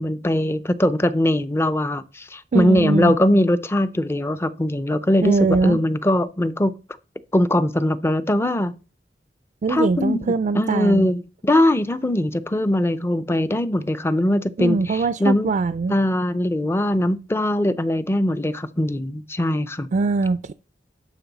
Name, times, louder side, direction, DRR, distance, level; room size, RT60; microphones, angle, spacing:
voice 1, 0.0-5.3 5.6-6.7 7.3-8.7 9.7-10.3 10.5-15.5 15.9-19.9, left 1 dB, 15° left, 0.5 m, -21 dB
voice 2, 2.5-3.2 5.2-5.8 9.6-11.1 14.6-15.9 19.9-20.5, right 4 dB, 45° right, 0.4 m, -22 dB
11.5 x 6.0 x 4.0 m
head